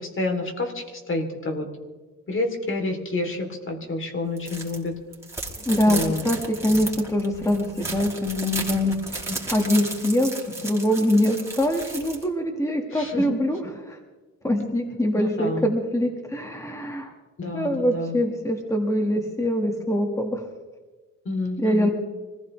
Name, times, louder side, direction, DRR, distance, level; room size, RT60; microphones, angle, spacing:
voice 1, 0.0-1.7 2.3-4.9 5.9-6.2 12.9-13.4 15.2-15.7 17.4-18.2 21.3-21.9, left 2 dB, 40° left, 3 dB, 3.6 m, -29 dB
sound 1, 4.4-4.8 5.1-12.2, right 2 dB, 10° right, 4.5 m, -34 dB
voice 2, 5.7-9.0 9.5-14.0 14.4-17.1 17.5-20.5 21.6-21.9, left 1 dB, 10° left, 2 dB, 2.1 m, -24 dB
25.5 x 15.5 x 3.4 m, 1.3 s
cardioid pair, 90°, 30 cm